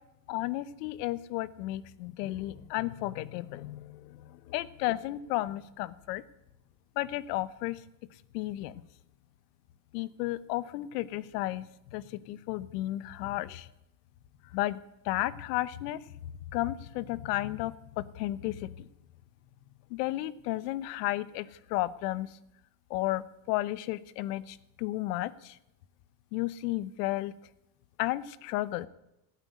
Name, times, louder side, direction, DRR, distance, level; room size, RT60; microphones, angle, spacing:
voice 1, 0.3-6.2 7.0-7.8 8.3-8.8 9.9-11.6 11.9-13.7 14.5-14.8 15.0-16.0 16.5-18.9 19.9-22.3 22.9-25.6 26.3-27.3 28.0-28.9, left 16 dB, 85° left, 18 dB, 1.0 m, -33 dB
16.5 x 8.9 x 9.4 m, 0.88 s
cardioid pair, 175°, 47 cm